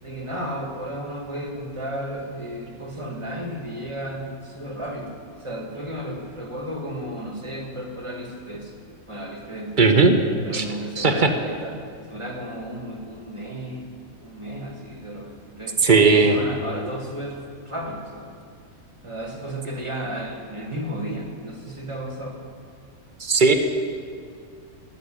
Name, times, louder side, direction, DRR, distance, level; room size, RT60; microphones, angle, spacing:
voice 1, 0.0-5.1 5.4-8.7 9.1-10.0 10.4-11.8 12.1-13.9 14.2-15.8 16.1-17.4 17.6-18.3 19.0-22.4, equal, 20° right, 1 dB, 1.6 m, -33 dB
voice 2, 9.8-10.2 10.5-10.6 11.0-11.3 15.8-16.4 23.2-23.5, right 4 dB, 40° right, 6 dB, 1.0 m, -16 dB
14.5 x 6.7 x 10.0 m, 2.3 s
omnidirectional pair, 1.5 m